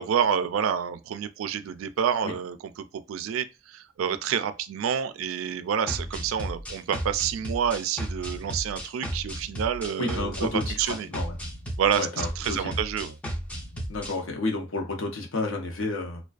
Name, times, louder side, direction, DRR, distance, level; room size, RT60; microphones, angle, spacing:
voice 1, 0.0-10.5 10.8-11.1 11.8-12.1 12.4-13.1, right 8 dB, 85° right, 0.3 m, -28 dB
sound 1, 5.9-14.2, equal, 5° left, 0.5 m, -34 dB
voice 2, 10.0-11.4 11.9-12.7 13.9-16.2, left 2 dB, 80° left, 0.7 m, -31 dB
2.4 x 2.2 x 2.3 m
head